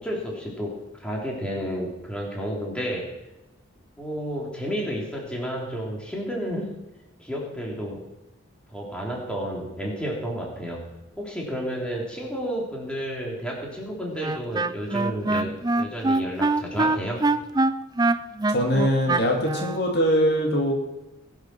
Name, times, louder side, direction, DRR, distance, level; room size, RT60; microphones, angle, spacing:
voice 1, 0.0-3.1 4.0-6.7 7.2-8.0 8.7-10.9 11.2-17.2, equal, 5° left, -3 dB, 3.2 m, -31 dB
Wind instrument woodwind instrument, 14.2-19.8, right 2 dB, 20° right, 0.4 m, -23 dB
voice 2, 18.5-20.7, equal, 55° left, 1 dB, 2.4 m, -22 dB
21.0 x 7.5 x 6.1 m, 0.98 s
head